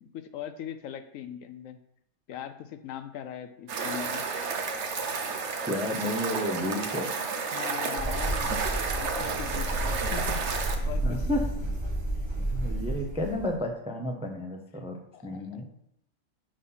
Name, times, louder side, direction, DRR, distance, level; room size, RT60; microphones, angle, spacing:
voice 1, 0.0-1.8 2.3-4.2 7.5-8.6 9.0-11.5 12.9-13.0 15.1-15.6, left 9 dB, 75° left, 10 dB, 0.9 m, -40 dB
sound 1, 3.7-10.8, right 4 dB, 60° right, 1.0 m, -31 dB
voice 2, 5.7-7.1 11.0-11.4 12.5-15.0 15.2-15.7, left 1 dB, 5° right, 3 dB, 0.5 m, -31 dB
sound 2, 8.0-13.6, right 1 dB, 25° right, 0.9 m, -31 dB
6.3 x 4.1 x 5.6 m, 0.77 s
omnidirectional pair, 1.5 m